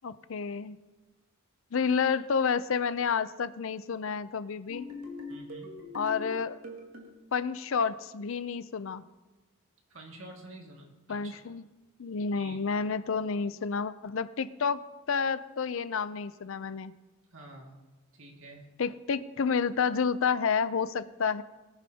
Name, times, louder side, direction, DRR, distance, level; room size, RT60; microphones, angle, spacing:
voice 1, 0.0-0.8 1.7-4.9 5.9-6.6 7.3-9.0 11.1-11.6 12.0-14.8 15.1-16.9 18.8-21.4, left 5 dB, 65° left, 14 dB, 0.5 m, -30 dB
sound 1, 4.7-7.1, left 2 dB, 85° right, 2.1 m, -42 dB
voice 2, 5.3-5.8 9.9-11.5 12.3-12.6 17.3-17.8 18.1-18.7, right 2 dB, 65° right, 1 dB, 2.1 m, -49 dB
19.5 x 11.0 x 2.8 m, 1.2 s
head